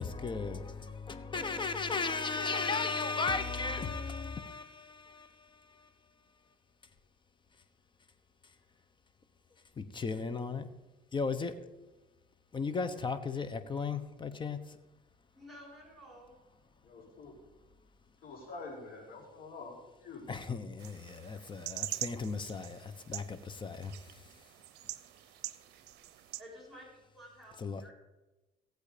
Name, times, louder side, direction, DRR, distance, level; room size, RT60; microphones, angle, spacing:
voice 1, 0.0-5.9 9.8-10.7 11.1-11.6 12.5-14.6 20.3-23.9 27.6-27.8, left 4 dB, 30° left, 1.0 m, -36 dB
voice 2, 15.3-16.3 26.4-27.9, equal, ahead, 5.7 m, -52 dB
voice 3, 16.8-17.3 18.2-20.3, left 3 dB, 60° left, 5.1 m, -47 dB
sound 1, 20.8-26.4, right 17 dB, 85° right, 0.6 m, -44 dB
17.5 x 8.0 x 5.2 m
cardioid pair, 110°, 17 cm